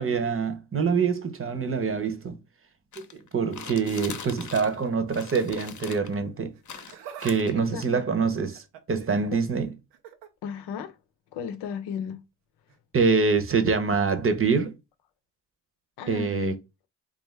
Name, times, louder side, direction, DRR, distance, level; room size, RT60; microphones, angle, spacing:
voice 1, 0.0-2.4 3.0-6.5 7.2-9.7 12.9-14.7 16.1-16.5, right 5 dB, 30° right, 0.8 m, -25 dB
sound 1, 2.9-4.8 5.1-6.1 6.6-7.8, left 7 dB, 45° left, 0.8 m, -41 dB
Laughter, 6.5-7.4 7.6-9.0 9.9-10.3 11.6-11.8 12.7-12.8, right 9 dB, 90° right, 0.7 m, -45 dB
voice 2, 7.5-8.0 9.3-9.4 10.4-11.0 11.3-12.2 16.0-16.6, left 7 dB, 75° left, 0.7 m, -34 dB
3.4 x 2.5 x 3.2 m
supercardioid pair, 55°, 41 cm